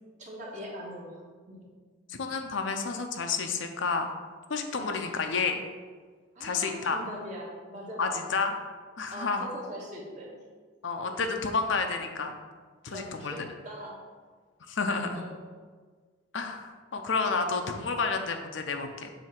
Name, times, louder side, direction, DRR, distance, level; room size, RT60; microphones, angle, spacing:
voice 1, 0.2-1.2 1.5-1.6 4.7-5.1 6.3-8.3 9.1-10.3 12.9-14.0 15.0-15.3, equal, 35° right, -4 dB, 1.5 m, -41 dB
voice 2, 2.1-4.1 4.5-5.6 6.4-7.0 8.0-8.5 9.0-9.5 10.8-12.3 12.8-13.3 14.7-15.2 16.3-19.1, left 4 dB, 70° left, 5 dB, 0.6 m, -30 dB
7.3 x 2.8 x 5.8 m, 1.5 s
head